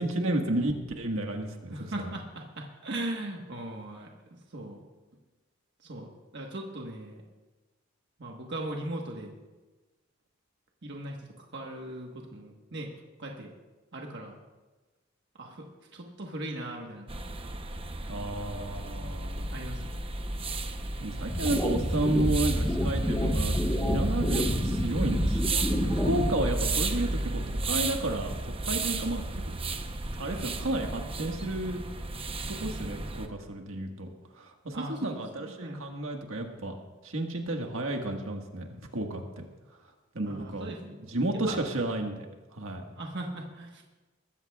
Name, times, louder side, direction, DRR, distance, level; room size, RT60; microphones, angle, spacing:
voice 1, 0.0-1.8 2.0-2.1 18.1-19.5 21.0-29.5 30.2-31.8 32.6-34.1 34.3-36.7 37.0-38.7 38.9-39.4 40.1-40.7 41.1-42.3 42.5-42.8, right 1 dB, 75° right, 3 dB, 1.6 m, -32 dB
voice 2, 1.7-4.1 4.5-4.8 5.8-6.1 6.3-7.2 8.2-9.3 10.8-12.9 13.2-13.5 13.9-14.4 15.4-15.7 15.9-17.1 19.5-20.0 26.1-26.3 34.7-35.8 40.3-41.1 41.5-41.6 42.9-43.8, right 1 dB, 60° right, 0 dB, 1.4 m, -39 dB
sound 1, 17.1-33.3, right 2 dB, 25° right, 0.8 m, -32 dB
sound 2, 21.3-26.3, equal, 10° left, 1.3 m, -29 dB
21.0 x 15.0 x 2.4 m, 1.2 s
head